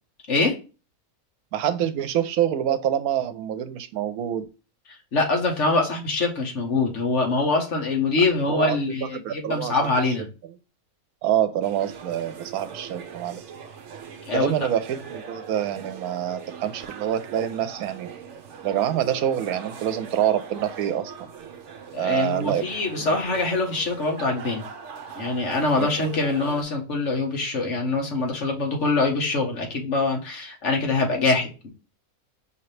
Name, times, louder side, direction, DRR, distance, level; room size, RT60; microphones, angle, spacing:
voice 1, 1.5-4.4 8.5-8.8 9.1-9.9 11.2-13.4 14.3-18.1 18.6-21.1 22.0-22.6 23.0-23.2 25.7-26.1, right 10 dB, 85° right, 11 dB, 1.1 m, -26 dB
voice 2, 4.9-10.3 14.3-14.5 21.9-24.6 25.2-31.7, left 3 dB, 55° left, 1 dB, 1.5 m, -24 dB
sound 1, 11.6-26.6, right 6 dB, 60° right, 1.0 m, -41 dB
5.2 x 2.9 x 3.2 m, 0.32 s
omnidirectional pair, 1.5 m